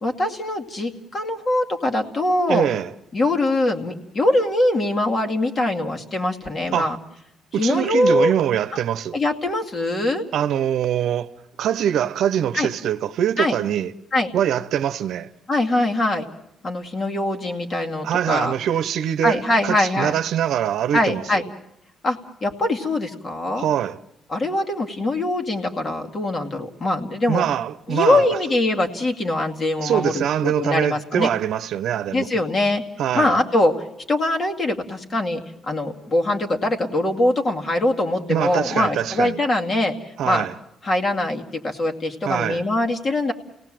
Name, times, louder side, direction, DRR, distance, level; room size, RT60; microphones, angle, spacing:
voice 1, 0.0-2.7 3.1-7.0 7.6-8.3 9.1-10.2 12.5-12.7 13.4-13.6 14.1-14.3 15.5-16.3 16.6-18.5 19.2-20.1 20.9-21.4 22.0-23.6 24.3-27.4 27.9-31.3 32.1-32.8 33.1-33.7 34.1-39.9 40.2-40.5 40.8-43.3, left 1 dB, 40° left, 2.3 m, -22 dB
voice 2, 2.5-2.9 6.7-7.0 7.5-9.2 10.3-11.3 11.6-13.9 14.3-15.3 18.0-21.4 23.6-24.0 27.3-28.3 29.8-32.3 33.0-33.4 38.3-39.4 40.2-40.5 42.2-42.6, right 10 dB, 75° right, 0.8 m, -23 dB
29.0 x 18.0 x 7.7 m
cardioid pair, 90°, 0 cm